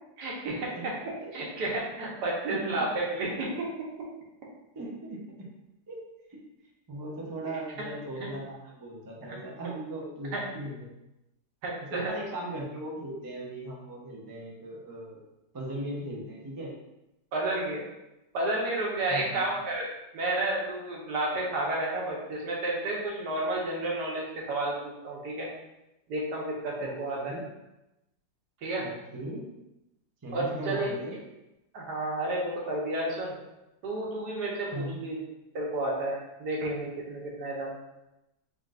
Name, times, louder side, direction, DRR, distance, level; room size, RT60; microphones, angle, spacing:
voice 1, 0.2-0.9 1.3-3.7 4.0-4.1 9.3-9.4 10.3-10.4 11.6-12.1 17.3-17.8 18.3-19.9 20.1-25.5 26.1-27.3 28.6-28.8 30.3-30.9 31.7-33.4 33.8-35.1 35.5-37.7, right 2 dB, 85° right, -3 dB, 1.6 m, -31 dB
voice 2, 2.5-2.9 4.7-5.5 5.9-6.4 6.9-10.9 11.8-15.2 15.5-16.7 19.1-19.5 26.8-27.5 28.8-29.4 30.2-31.2 34.7-35.0, right 1 dB, 30° right, -4 dB, 0.4 m, -38 dB
4.0 x 3.8 x 2.5 m, 0.94 s
omnidirectional pair, 1.7 m